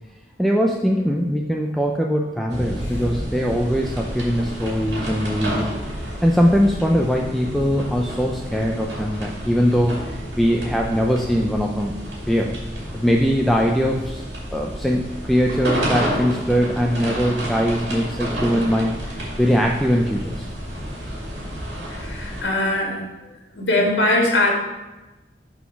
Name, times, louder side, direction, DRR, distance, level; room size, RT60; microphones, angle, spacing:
voice 1, 0.4-5.8 6.2-12.0 12.3-12.6 12.9-14.2 14.5-20.5, equal, ahead, 0 dB, 0.4 m, -21 dB
sound 1, 2.5-22.4, equal, 90° right, 2.2 m, -30 dB
voice 2, 21.9-23.0 23.5-24.5, left 1 dB, 85° left, -1 dB, 1.8 m, -20 dB
6.0 x 3.9 x 5.8 m, 1.1 s
head